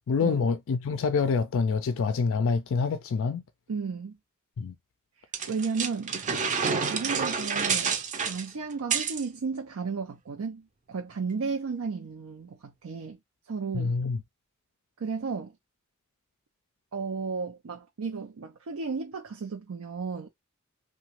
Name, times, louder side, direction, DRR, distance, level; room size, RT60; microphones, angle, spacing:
voice 1, 0.1-3.4 4.6-4.8 13.7-14.2, left 5 dB, 65° left, 0.4 m, -26 dB
voice 2, 3.7-4.2 5.5-6.1 6.9-13.2 13.5-13.9 15.0-15.5 16.9-20.3, right 5 dB, 85° right, 0.5 m, -33 dB
sound 1, 5.3-9.2, right 6 dB, 35° right, 0.6 m, -28 dB
2.9 x 2.2 x 2.9 m
head